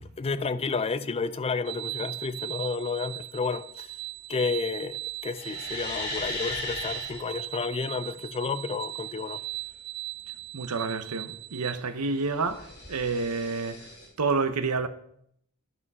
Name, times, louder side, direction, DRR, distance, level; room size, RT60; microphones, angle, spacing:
voice 1, 0.0-3.9 4.3-9.4, left 4 dB, 25° left, 0.4 m, -31 dB
sound 1, 1.6-11.7, right 16 dB, 50° right, 0.6 m, -39 dB
sound 2, 5.3-7.3 12.1-14.1, left 2 dB, 50° left, 3.8 m, -37 dB
voice 2, 10.5-13.8 14.2-14.9, right 4 dB, 90° right, 0.8 m, -29 dB
11.0 x 5.8 x 5.4 m
head